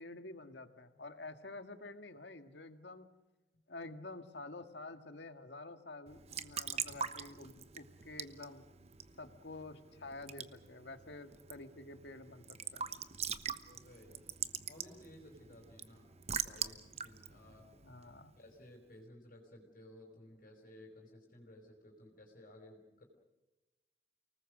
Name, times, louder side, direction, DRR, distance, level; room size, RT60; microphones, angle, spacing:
voice 1, 0.0-3.1 3.7-8.6 9.2-12.8 17.8-18.3, left 2 dB, 80° left, 8 dB, 1.8 m, -49 dB
Raindrop / Drip / Trickle dribble, 6.1-18.5, right 7 dB, 35° right, 1.0 m, -44 dB
voice 2, 13.6-14.3 14.7-16.1 16.4-17.7 18.3-23.0, left 1 dB, 50° left, 1 dB, 5.0 m, -57 dB
30.0 x 19.5 x 6.6 m, 1.1 s
head